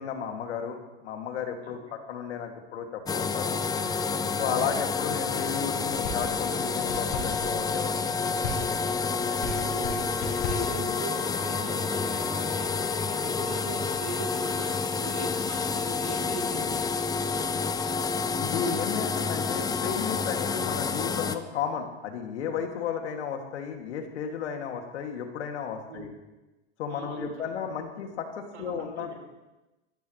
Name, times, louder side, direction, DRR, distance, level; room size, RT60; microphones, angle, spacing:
voice 1, 0.0-3.6 4.4-8.1 18.4-26.1 26.8-29.1, left 7 dB, 75° left, 3 dB, 2.6 m, -33 dB
sound 1, 3.1-21.4, left 5 dB, 10° left, 0.6 m, -29 dB
voice 2, 4.4-4.7 9.3-12.7 13.1-17.0 25.9-26.1 26.9-27.6 28.5-29.2, right 4 dB, 90° right, 0 dB, 5.6 m, -40 dB
sound 2, 6.0-10.9, left 2 dB, 55° left, 6.2 m, -38 dB
25.0 x 14.0 x 3.3 m, 1.1 s
hypercardioid pair, 125°, 34 cm